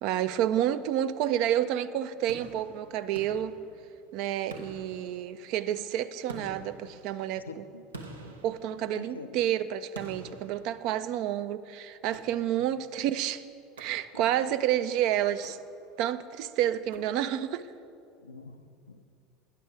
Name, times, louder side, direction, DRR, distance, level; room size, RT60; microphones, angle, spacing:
voice 1, 0.0-3.6 4.1-7.5 8.4-13.4 13.8-15.6 16.0-17.7, right 11 dB, 55° right, 13 dB, 0.4 m, -29 dB
sound 1, 2.3-4.1 4.5-5.7 6.3-9.3 9.9-11.4 12.1-12.8 13.8-14.5 15.3-16.1 16.9-17.6, right 2 dB, 85° right, 0.7 m, -48 dB
voice 2, 7.4-7.8 8.9-9.4 12.6-12.7 14.1-14.5 18.2-19.0, left 3 dB, 90° left, 8 dB, 0.4 m, -45 dB
9.5 x 7.5 x 4.7 m, 2.4 s
figure-of-eight pair, 70°, 0 cm